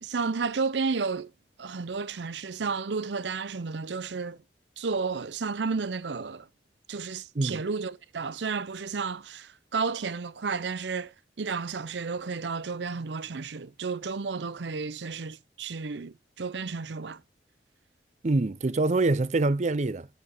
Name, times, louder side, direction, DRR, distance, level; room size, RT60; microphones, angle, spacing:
voice 1, 0.0-1.3 1.6-4.4 4.8-6.5 6.9-17.2, right 4 dB, 80° right, 0.6 m, -32 dB
voice 2, 18.2-20.1, right 2 dB, 40° right, 0.5 m, -25 dB
7.8 x 7.2 x 5.5 m
head